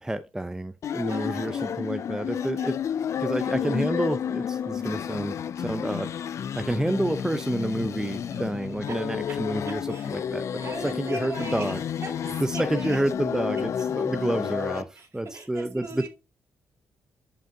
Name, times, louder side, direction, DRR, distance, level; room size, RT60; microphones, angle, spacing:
voice 1, 0.0-2.8 3.2-11.8 12.4-14.9 15.1-16.1, right 1 dB, 10° right, 0.6 m, -29 dB
sound 1, 0.8-14.8, left 8 dB, 55° left, 0.3 m, -31 dB
voice 2, 1.1-1.9 2.4-2.7 8.9-9.0 9.3-9.4 9.6-10.2 10.5-11.8 12.0-13.0 14.7-16.1, right 3 dB, 50° right, 2.4 m, -40 dB
7.8 x 5.0 x 2.7 m
hypercardioid pair, 40°, 6 cm